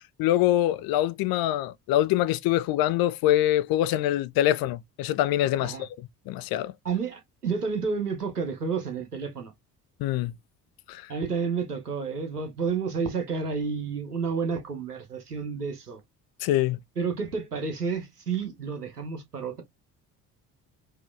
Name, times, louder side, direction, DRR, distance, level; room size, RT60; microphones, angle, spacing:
voice 1, 0.2-5.9 6.3-6.7 10.0-10.3 10.9-11.0 16.4-16.8, left 13 dB, 50° left, 0.7 m, -24 dB
voice 2, 6.8-9.5 11.1-16.0 17.0-19.6, right 5 dB, 90° right, 0.9 m, -30 dB
4.8 x 2.8 x 3.3 m
figure-of-eight pair, 50°, 45 cm